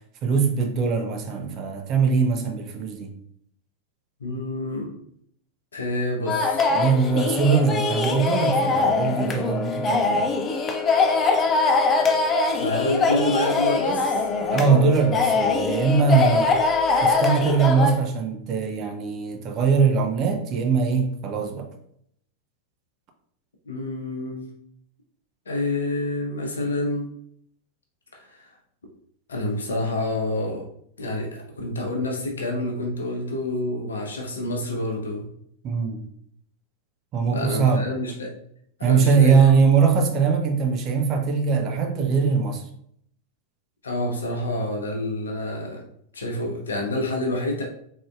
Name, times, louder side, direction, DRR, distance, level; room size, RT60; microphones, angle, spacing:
voice 1, 0.2-3.1 6.7-10.2 14.5-16.5 17.0-21.7 35.6-36.0 37.1-37.8 38.8-42.6, right 5 dB, 35° right, 0.6 m, -21 dB
voice 2, 4.2-4.9 5.7-6.8 12.5-14.3 23.7-24.5 25.5-27.1 28.1-28.5 29.3-30.6 31.0-35.3 37.3-38.4 38.8-39.4 43.8-45.8 46.1-47.6, left 1 dB, 70° left, 0.8 m, -28 dB
sound 1, 6.3-18.0, left 3 dB, 25° left, 0.4 m, -22 dB
3.8 x 3.5 x 2.4 m
figure-of-eight pair, 90°, 0 cm